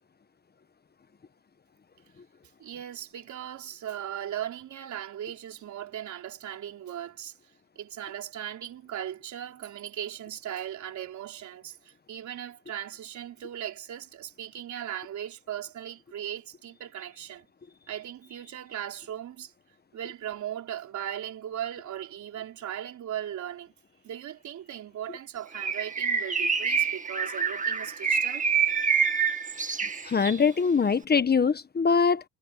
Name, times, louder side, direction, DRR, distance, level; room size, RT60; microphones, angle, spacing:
voice 1, 2.6-7.4 7.8-17.5 17.9-19.5 19.9-23.7 24.0-28.5, right 10 dB, 70° right, 4.1 m, -38 dB
Bird, 25.5-30.5, right 6 dB, 25° right, 2.2 m, -27 dB
voice 2, 30.0-32.2, left 5 dB, 30° left, 1.3 m, -23 dB
cardioid pair, 90°, 30 cm